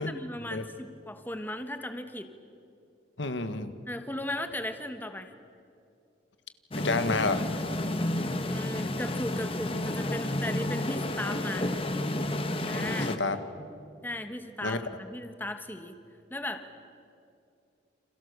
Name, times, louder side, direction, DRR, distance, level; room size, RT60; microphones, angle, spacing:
voice 1, 0.0-2.3 3.9-5.3 8.5-11.7 12.7-13.1 14.0-15.9 16.3-16.8, left 1 dB, 10° left, 7 dB, 1.4 m, -37 dB
voice 2, 3.2-3.7 6.7-7.4 12.8-13.4 14.6-14.8, left 3 dB, 80° left, 9 dB, 1.7 m, -29 dB
sound 1, 6.7-13.2, left 1 dB, 30° left, 1.5 m, -31 dB
30.0 x 28.0 x 6.8 m, 2.5 s
head